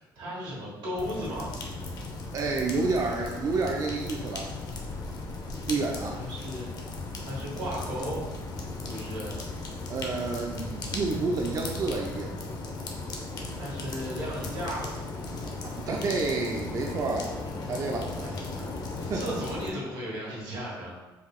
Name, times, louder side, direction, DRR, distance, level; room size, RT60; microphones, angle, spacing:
voice 1, 0.0-1.5 6.0-6.7 7.1-8.2 8.9-9.4 13.5-14.9 18.1-18.7 19.1-20.9, equal, 85° right, -4 dB, 1.4 m, -35 dB
sound 1, 1.0-19.7, left 3 dB, 50° left, 0.6 m, -36 dB
voice 2, 2.3-4.5 5.7-6.2 9.9-12.3 15.6-17.3 17.7-18.1 19.0-19.4, right 3 dB, 40° right, 0 dB, 0.4 m, -29 dB
3.7 x 2.4 x 3.5 m, 1.2 s
cardioid pair, 100°, 9 cm